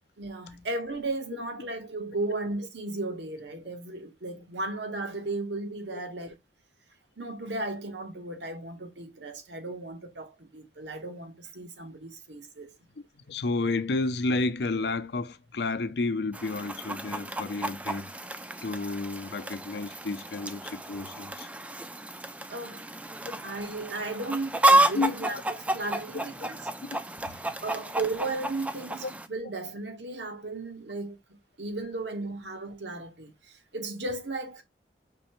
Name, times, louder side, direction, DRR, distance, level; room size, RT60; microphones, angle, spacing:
voice 1, 0.2-6.3 7.2-12.7 22.5-22.8 23.4-26.6 27.6-31.2 31.6-34.6, right 2 dB, 80° right, 1.1 m, -35 dB
voice 2, 13.3-18.1 18.6-21.5 23.2-23.4 24.9-25.3 26.9-27.0 27.3-27.4, left 3 dB, 70° left, 0.5 m, -31 dB
Chicken rooster, 16.3-29.3, right 1 dB, 10° right, 0.3 m, -30 dB
5.3 x 3.2 x 3.0 m
head